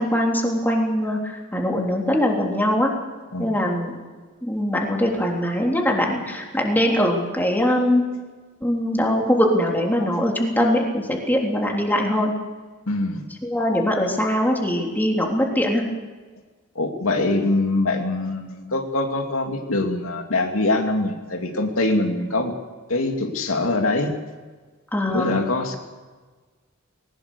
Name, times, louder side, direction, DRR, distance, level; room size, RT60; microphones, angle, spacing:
voice 1, 0.0-2.9 3.4-3.9 4.4-8.0 8.6-12.3 13.4-15.8 24.9-25.4, equal, 10° left, -1 dB, 3.4 m, -22 dB
voice 2, 12.9-13.2 16.7-22.5 22.9-24.2 25.1-25.8, left 2 dB, 90° left, 3 dB, 2.6 m, -23 dB
20.5 x 18.5 x 6.9 m, 1.4 s
head